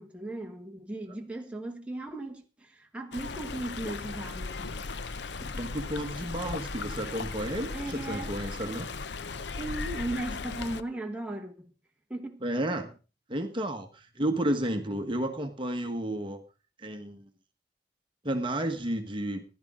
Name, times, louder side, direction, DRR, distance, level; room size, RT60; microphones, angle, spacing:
voice 1, 0.0-4.8 7.7-8.4 9.6-11.7 12.1-12.9, right 2 dB, 5° right, 1.3 m, -37 dB
Stream, 3.1-10.8, left 4 dB, 70° left, 0.7 m, -37 dB
voice 2, 5.4-8.9 12.4-12.9 13.3-16.4 16.8-17.2 18.2-19.4, right 1 dB, 25° right, 1.3 m, -32 dB
15.0 x 11.5 x 3.7 m
head